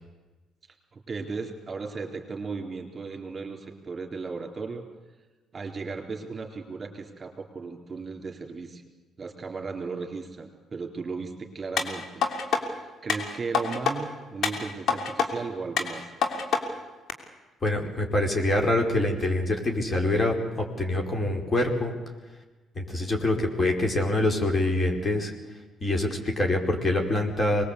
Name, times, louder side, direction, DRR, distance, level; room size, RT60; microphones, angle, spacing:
voice 1, 0.9-4.8 5.5-8.8 9.2-12.2 12.8-16.1, right 4 dB, 35° right, 3 dB, 4.1 m, -36 dB
sound 1, 11.8-12.6 13.1-14.0 14.4-15.3 15.8-16.6 17.1-17.2, left 5 dB, 60° left, 3.1 m, -26 dB
voice 2, 17.6-21.9 22.7-25.3 25.8-27.6, left 1 dB, 30° left, 2 dB, 5.0 m, -25 dB
24.0 x 20.5 x 8.4 m, 1.2 s
supercardioid pair, 70°, 0 cm